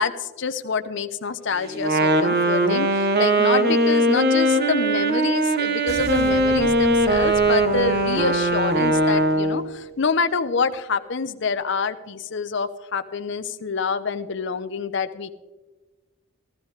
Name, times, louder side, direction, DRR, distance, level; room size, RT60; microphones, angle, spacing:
voice 1, 0.0-15.4, left 5 dB, 55° left, 11 dB, 0.6 m, -27 dB
Wind instrument woodwind instrument, 1.7-9.7, right 1 dB, 50° right, 0.9 m, -20 dB
sound 1, 5.9-9.9, equal, 30° right, 1.2 m, -38 dB
14.5 x 14.0 x 3.2 m, 1.2 s
head